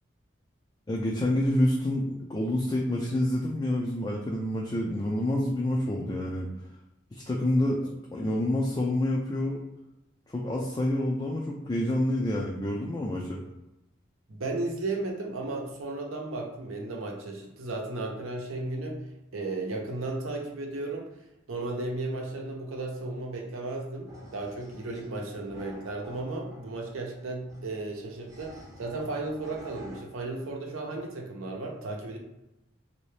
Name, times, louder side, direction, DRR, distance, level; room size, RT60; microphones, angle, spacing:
voice 1, 0.9-6.5 7.1-7.8 8.1-9.6 10.3-13.4, left 1 dB, 20° left, -2 dB, 0.3 m, -28 dB
voice 2, 14.3-19.0 19.3-21.1 21.5-32.2, right 2 dB, 85° right, 1 dB, 0.7 m, -34 dB
sound 1, 24.1-30.0, equal, 15° right, 0.6 m, -50 dB
3.2 x 2.7 x 3.2 m, 0.92 s
head